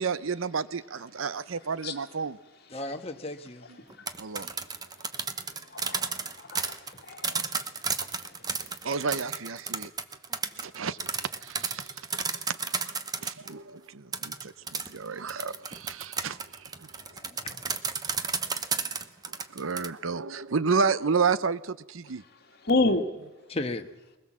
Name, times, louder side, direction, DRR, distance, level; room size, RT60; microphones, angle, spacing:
voice 1, 0.0-2.4 4.2-4.5 8.8-9.9 10.6-16.9 19.5-22.2, right 5 dB, 80° right, 0.7 m, -31 dB
voice 2, 2.7-3.7 8.4-8.6 10.6-10.7 16.9-17.6 23.5-23.9, left 2 dB, 30° left, 1.3 m, -36 dB
sound 1, 3.9-13.5 14.1-19.9, right 5 dB, 20° right, 0.9 m, -32 dB
voice 3, 5.7-7.5 8.2-8.3 22.6-23.0, left 2 dB, 50° left, 2.1 m, -29 dB
22.0 x 20.5 x 7.5 m
head